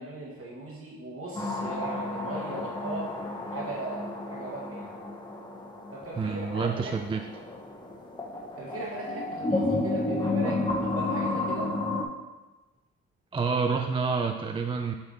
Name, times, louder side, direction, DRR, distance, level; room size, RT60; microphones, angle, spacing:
voice 1, 0.0-3.1 3.5-4.9 5.9-6.9 8.6-11.7, right 2 dB, 50° right, -3 dB, 1.9 m, -38 dB
sound 1, 1.3-12.0, left 2 dB, 15° left, 0.9 m, -32 dB
voice 2, 6.2-7.2 13.3-14.9, right 5 dB, 20° right, 4 dB, 0.3 m, -28 dB
8.1 x 3.4 x 4.0 m, 1.2 s
cardioid pair, 90°, 30 cm